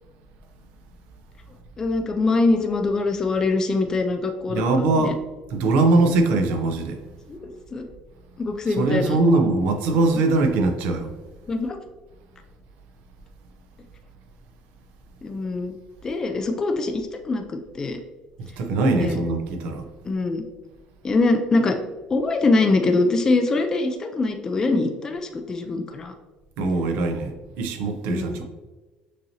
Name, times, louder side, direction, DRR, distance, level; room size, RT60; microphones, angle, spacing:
voice 1, 1.8-5.1 7.3-7.8 8.4-9.2 11.5-11.8 15.2-15.7 16.0-18.0 18.9-19.2 20.1-20.4 21.0-21.8 22.1-26.1 28.1-28.4, left 3 dB, 25° left, 5 dB, 0.4 m, -23 dB
voice 2, 4.5-5.2 5.5-7.0 8.7-11.1 18.4-19.8 26.6-28.4, right 2 dB, 80° right, 5 dB, 0.7 m, -21 dB
6.2 x 2.9 x 2.8 m, 1.2 s
cardioid pair, 135°, 3 cm